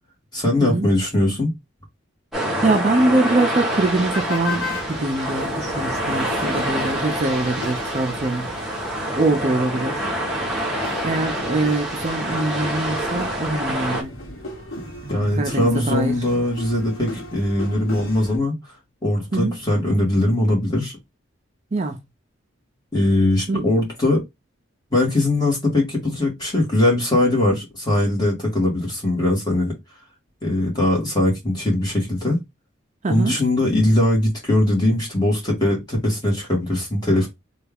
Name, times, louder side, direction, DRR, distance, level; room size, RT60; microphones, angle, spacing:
voice 1, 0.3-1.5 15.1-18.5 19.0-21.0 22.9-24.2 24.9-29.7 30.4-32.4 33.1-37.3, left 1 dB, 20° left, 1.5 m, -20 dB
sound 1, 2.3-14.0, right 1 dB, ahead, 0.9 m, -26 dB
voice 2, 2.6-8.5 9.2-10.0 11.0-14.1 15.0-16.1 19.3-19.6 21.7-22.0 23.5-23.7 33.0-33.4, right 2 dB, 35° right, 0.4 m, -23 dB
sound 2, 3.7-18.4, left 2 dB, 70° left, 1.1 m, -36 dB
3.2 x 2.3 x 3.4 m
head